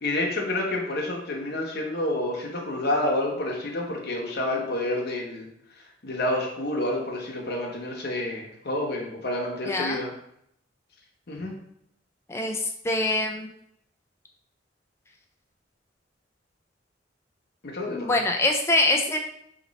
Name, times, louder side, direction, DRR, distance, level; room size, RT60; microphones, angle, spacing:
voice 1, 0.0-5.5 6.0-10.1 11.3-11.5 17.6-18.2, left 1 dB, 55° left, -1 dB, 0.8 m, -29 dB
voice 2, 9.7-10.0 12.3-13.5 17.9-19.2, left 2 dB, 15° left, 3 dB, 0.3 m, -24 dB
3.0 x 2.9 x 4.0 m, 0.73 s
head